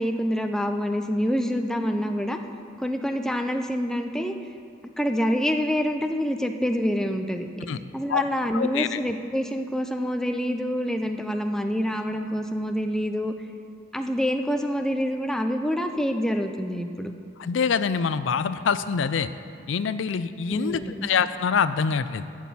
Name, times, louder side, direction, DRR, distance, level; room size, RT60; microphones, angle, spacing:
voice 1, 0.0-2.4 2.8-4.3 5.0-7.7 7.9-13.3 13.9-17.1 20.5-21.1, equal, 5° left, 5 dB, 0.5 m, -26 dB
voice 2, 8.5-9.0 17.4-19.3 19.7-22.3, left 6 dB, 80° left, 13 dB, 0.4 m, -25 dB
12.5 x 6.1 x 8.5 m, 2.3 s
head